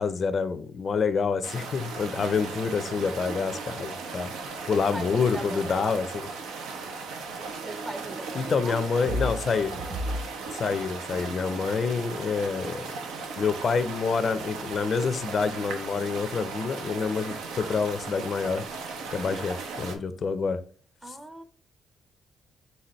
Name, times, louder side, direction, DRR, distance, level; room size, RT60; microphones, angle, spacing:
voice 1, 0.0-4.3 4.7-6.3 8.3-9.8 10.5-12.8 13.4-18.7 19.1-20.6 21.1-21.2, left 5 dB, 50° left, 0.4 m, -27 dB
sound 1, 1.4-20.0, right 4 dB, 90° right, 0.8 m, -37 dB
voice 2, 2.2-3.0 4.7-6.0 7.6-8.8 21.0-21.4, right 2 dB, 20° right, 0.6 m, -39 dB
sound 2, 6.7-8.5 9.0-12.4, equal, 40° right, 2.2 m, -37 dB
4.1 x 3.8 x 3.0 m
cardioid pair, 90°, 0 cm